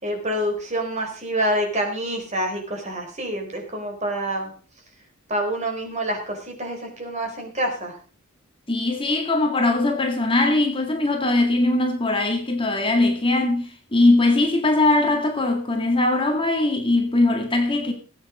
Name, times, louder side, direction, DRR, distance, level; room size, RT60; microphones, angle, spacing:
voice 1, 0.0-4.5 5.3-7.9, right 1 dB, 35° right, 4.3 m, -27 dB
voice 2, 8.7-17.9, left 2 dB, 25° left, 2.1 m, -20 dB
18.5 x 8.8 x 5.0 m
head